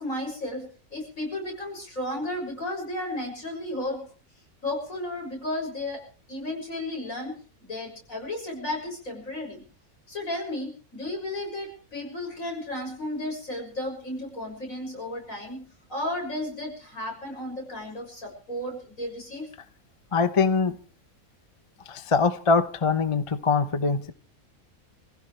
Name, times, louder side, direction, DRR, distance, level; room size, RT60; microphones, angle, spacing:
voice 1, 0.0-4.1 4.6-9.6 10.1-15.6 15.9-19.5, left 1 dB, 65° left, 0 dB, 7.1 m, -33 dB
voice 2, 20.1-20.8 21.9-24.1, left 4 dB, 30° left, 11 dB, 0.7 m, -23 dB
27.0 x 16.0 x 3.3 m, 0.38 s
omnidirectional pair, 1.5 m